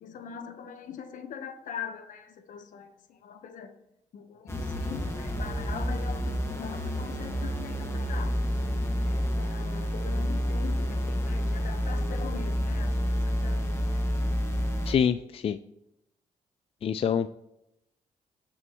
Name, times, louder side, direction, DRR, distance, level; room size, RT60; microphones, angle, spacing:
voice 1, 0.0-3.7 4.1-8.4 9.0-14.1, left 7 dB, 75° left, 1.1 m, -42 dB
sound 1, 4.5-14.9, equal, 20° left, 1.8 m, -29 dB
voice 2, 14.9-15.6 16.8-17.3, left 7 dB, 45° left, 0.4 m, -25 dB
17.5 x 7.0 x 3.1 m
cardioid pair, 85°, 13 cm